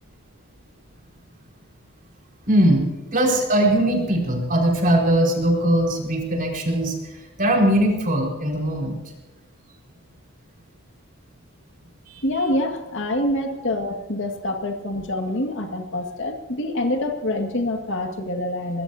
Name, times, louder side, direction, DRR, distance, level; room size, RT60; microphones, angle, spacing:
voice 1, 2.5-2.9 3.1-7.0 7.4-9.0, right 1 dB, 40° right, 0 dB, 4.9 m, -20 dB
voice 2, 12.2-18.8, left 1 dB, 55° left, 4 dB, 2.0 m, -26 dB
24.0 x 21.0 x 2.8 m, 1.2 s
head